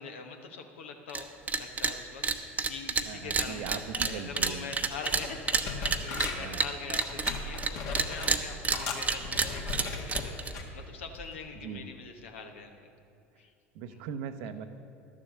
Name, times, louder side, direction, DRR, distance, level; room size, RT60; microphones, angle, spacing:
voice 1, 0.0-10.4 10.7-12.9 13.4-13.5 13.9-14.1, left 5 dB, 75° left, 5 dB, 1.1 m, -43 dB
sound 1, 1.1-1.2 1.5-1.9 2.2-7.7 7.9-10.5, right 4 dB, 20° right, 0.8 m, -29 dB
voice 2, 3.1-4.6 6.4-6.7 11.6-11.8 13.7-14.6, right 7 dB, 60° right, 9 dB, 0.8 m, -39 dB
sound 2, 4.6-4.8 5.0-6.6 7.0-8.4 8.7-10.7 11.2-11.4, left 4 dB, 55° left, 1.7 m, -37 dB
12.0 x 7.3 x 6.8 m, 2.5 s
hypercardioid pair, 75°, 7 cm